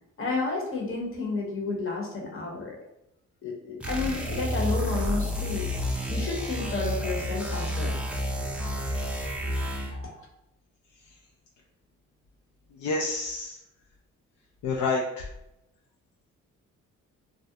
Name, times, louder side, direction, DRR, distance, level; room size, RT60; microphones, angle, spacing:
voice 1, 0.2-2.8 3.4-5.7 6.1-8.0 9.9-10.1, left 3 dB, 45° left, -1 dB, 0.9 m, -31 dB
sound 1, 3.8-10.1, left 1 dB, 5° right, 0.4 m, -30 dB
voice 2, 12.8-13.6 14.6-15.3, left 3 dB, 70° left, -1 dB, 0.4 m, -28 dB
2.4 x 2.0 x 2.7 m, 0.85 s
cardioid pair, 90°, 30 cm